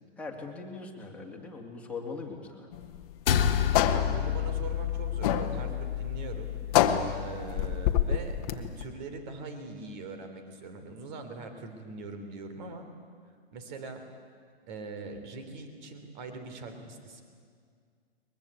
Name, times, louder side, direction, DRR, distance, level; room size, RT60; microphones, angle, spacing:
voice 1, 0.2-2.7, left 4 dB, 5° left, -2 dB, 2.7 m, -40 dB
sound 1, 2.7-8.9, left 10 dB, 35° left, 1.3 m, -28 dB
sound 2, 3.3-7.8, left 9 dB, 60° left, 1.7 m, -30 dB
voice 2, 3.7-6.5 7.1-12.9 13.5-14.0 14.7-17.2, right 3 dB, 45° right, 7 dB, 3.6 m, -42 dB
22.5 x 22.0 x 8.4 m, 2.1 s
hypercardioid pair, 140°, 32 cm